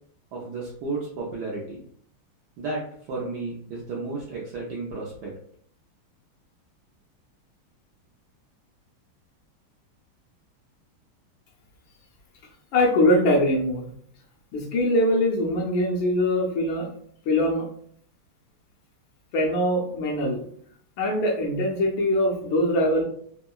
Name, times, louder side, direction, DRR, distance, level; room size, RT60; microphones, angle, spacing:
voice 1, 0.3-1.8 2.6-5.3, right 3 dB, 80° right, -4 dB, 0.9 m, -33 dB
voice 2, 12.7-13.8 14.5-16.9 17.3-17.6 19.3-20.4 21.0-23.0, left 1 dB, 75° left, -1 dB, 1.2 m, -22 dB
3.6 x 2.0 x 2.2 m, 0.64 s
omnidirectional pair, 2.4 m